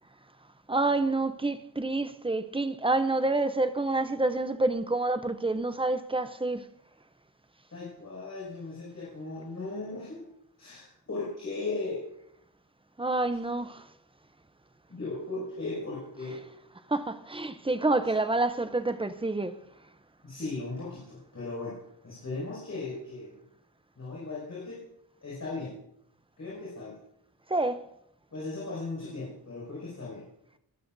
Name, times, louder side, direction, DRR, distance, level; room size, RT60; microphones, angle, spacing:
voice 1, 0.7-6.6 13.0-13.9 16.9-19.5 27.5-27.8, right 2 dB, 15° right, 0.5 m, -28 dB
voice 2, 7.7-10.3 10.6-12.0 14.9-16.4 20.2-21.8 22.0-23.4 24.0-24.8 25.2-25.8 26.4-27.0 28.3-30.3, left 3 dB, 40° left, 5.9 m, -37 dB
22.0 x 14.0 x 2.6 m
wide cardioid pair, 175°, 43 cm